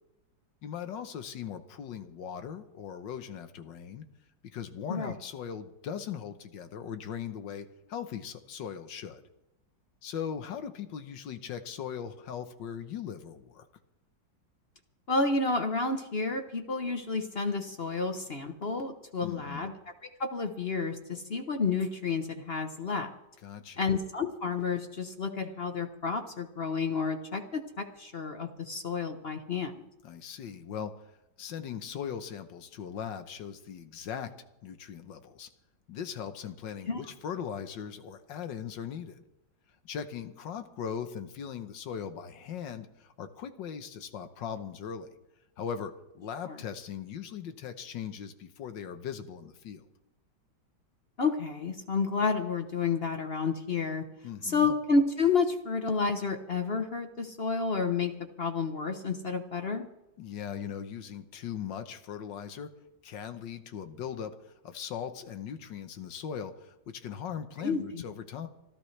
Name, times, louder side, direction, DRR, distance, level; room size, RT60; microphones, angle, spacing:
voice 1, 0.6-4.1 4.4-9.2 10.0-13.7 19.2-19.7 23.4-23.8 30.0-31.0 31.4-35.5 35.9-39.2 39.8-45.2 45.6-49.8 54.2-54.7 60.2-62.7 63.0-68.5, left 8 dB, 75° left, 9 dB, 1.7 m, -39 dB
voice 2, 15.1-19.7 20.2-23.1 23.8-29.7 36.9-37.0 46.5-46.6 51.2-54.0 54.4-59.9 67.6-68.0, left 4 dB, 40° left, 6 dB, 0.9 m, -30 dB
25.5 x 14.0 x 3.3 m, 0.90 s
omnidirectional pair, 2.0 m